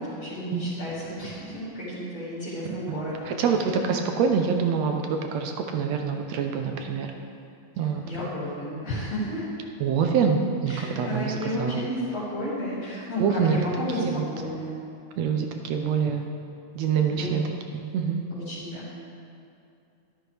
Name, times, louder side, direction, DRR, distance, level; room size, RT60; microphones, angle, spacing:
voice 1, 0.0-3.3 7.8-9.5 10.7-14.8 17.1-17.3 18.3-19.0, equal, 60° left, -13 dB, 3.9 m, -32 dB
voice 2, 3.3-7.1 7.8-8.0 9.8-11.8 13.2-13.6 14.0-14.3 15.2-16.3 16.8-17.4 17.9-18.2, right 6 dB, 75° right, 4 dB, 1.8 m, -25 dB
12.5 x 12.0 x 3.4 m, 2.6 s
omnidirectional pair, 3.4 m